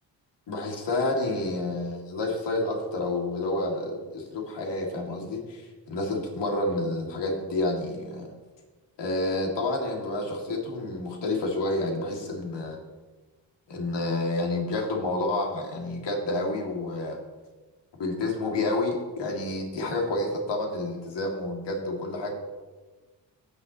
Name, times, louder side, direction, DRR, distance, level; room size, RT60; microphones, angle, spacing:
voice 1, 0.5-8.3 9.0-12.8 13.7-17.2 18.0-22.3, left 2 dB, 70° left, 0 dB, 2.5 m, -29 dB
17.5 x 7.0 x 3.1 m, 1.3 s
cardioid pair, 65°, 44 cm